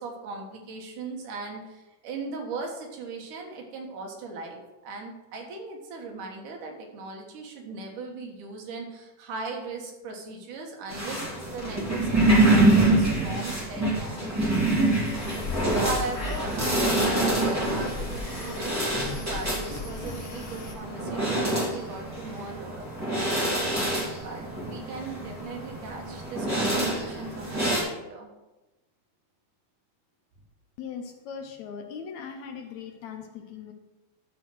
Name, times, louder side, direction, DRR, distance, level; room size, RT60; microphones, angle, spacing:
voice 1, 0.0-15.2 15.5-18.9 19.2-23.7 24.2-28.3, right 3 dB, 75° right, 1 dB, 3.0 m, -39 dB
sound 1, 10.9-27.8, right 1 dB, 5° right, 2.2 m, -26 dB
sound 2, 15.0-20.7, left 3 dB, 50° left, 1.9 m, -37 dB
voice 2, 30.8-33.7, left 6 dB, 70° left, 5 dB, 1.9 m, -39 dB
12.0 x 4.3 x 6.2 m, 1.1 s
omnidirectional pair, 3.7 m